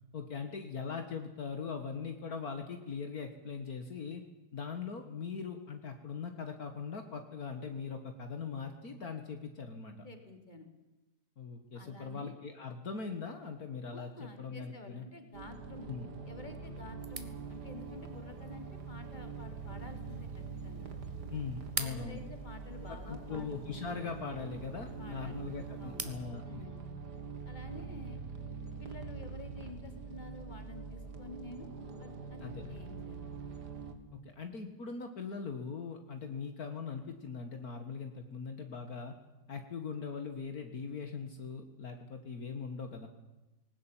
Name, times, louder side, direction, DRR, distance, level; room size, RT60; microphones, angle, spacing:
voice 1, 0.1-4.2 4.5-10.0 11.4-15.0 15.9-16.1 21.3-22.2 22.9-26.6 32.4-32.8 34.1-39.2 39.5-43.1, left 5 dB, 65° left, 6 dB, 2.2 m, -41 dB
voice 2, 10.0-10.7 11.7-12.3 13.9-15.9 16.3-20.9 21.8-23.5 25.0-25.4 25.8-26.1 26.4-26.8 27.4-28.2 28.8-31.7 32.0-33.2, left 2 dB, 25° left, 6 dB, 3.1 m, -50 dB
sound 1, 15.3-33.9, right 5 dB, 80° right, 2.8 m, -44 dB
sound 2, 17.0-26.3, right 2 dB, 20° right, 1.7 m, -47 dB
20.0 x 18.5 x 9.0 m, 1.1 s
omnidirectional pair, 1.8 m